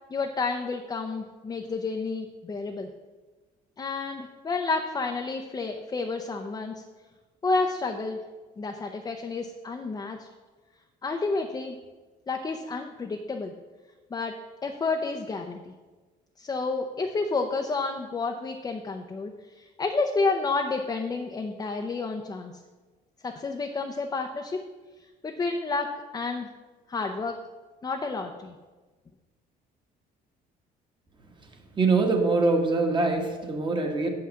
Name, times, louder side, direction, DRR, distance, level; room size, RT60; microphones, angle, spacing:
voice 1, 0.1-2.9 3.8-6.7 7.4-8.2 8.6-10.3 11.0-11.8 12.3-13.5 14.1-14.3 14.6-15.7 16.4-22.5 23.2-24.6 25.2-26.5 26.9-27.4 27.8-28.5, left 3 dB, 25° left, 3 dB, 0.6 m, -30 dB
voice 2, 31.7-34.1, right 3 dB, 30° right, 3 dB, 1.3 m, -23 dB
7.1 x 5.8 x 6.3 m, 1.3 s
cardioid pair, 110°, 17 cm